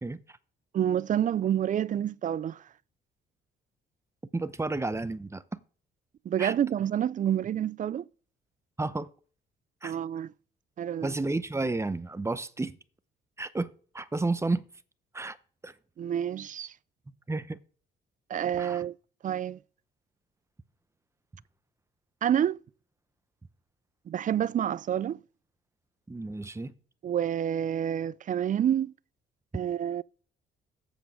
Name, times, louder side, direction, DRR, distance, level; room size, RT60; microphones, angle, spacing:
voice 1, 0.0-0.4 4.3-5.6 6.4-6.5 8.8-9.1 9.8-9.9 11.0-12.8 13.4-14.6 15.1-15.4 15.6-15.7 17.3-17.6 18.6-18.8 26.1-26.7, right 2 dB, 15° right, 0.7 m, -32 dB
voice 2, 0.7-2.6 6.3-8.1 9.8-10.3 10.8-11.1 16.0-16.7 18.3-18.9 19.2-19.6 22.2-22.6 24.1-25.2 27.0-28.9 29.5-30.0, right 10 dB, 40° right, 0.4 m, -28 dB
8.3 x 6.9 x 5.0 m
cardioid pair, 90°, 20 cm